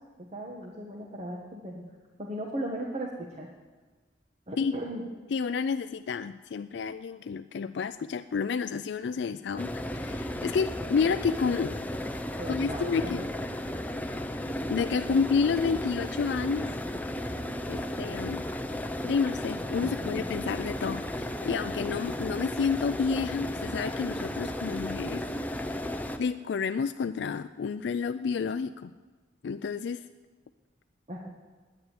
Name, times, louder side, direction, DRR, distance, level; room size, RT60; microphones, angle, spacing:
voice 1, 0.2-1.8 2.2-3.5 4.5-5.0 11.9-12.1 12.4-13.1 19.8-20.3 31.1-31.3, right 1 dB, 35° right, -1 dB, 1.4 m, -37 dB
voice 2, 5.3-11.8 12.5-13.2 14.7-16.7 17.7-18.5 19.0-25.2 26.2-28.9 29.4-30.0, left 5 dB, 65° left, 9 dB, 0.3 m, -30 dB
sound 1, 9.6-26.2, left 1 dB, 10° left, 0.7 m, -34 dB
9.8 x 9.4 x 9.7 m, 1.3 s
head